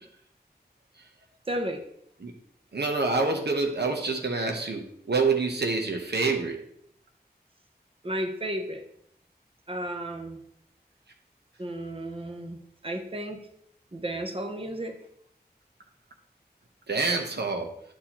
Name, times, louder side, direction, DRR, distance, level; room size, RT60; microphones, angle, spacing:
voice 1, 1.5-1.8 8.0-8.8 9.7-10.4 11.6-12.6 12.8-13.4 13.9-15.0, right 1 dB, 35° right, 6 dB, 0.8 m, -33 dB
voice 2, 2.7-6.6 16.9-17.7, right 3 dB, 90° right, 3 dB, 0.8 m, -27 dB
9.5 x 4.2 x 2.9 m, 0.69 s
wide cardioid pair, 55°, 17 cm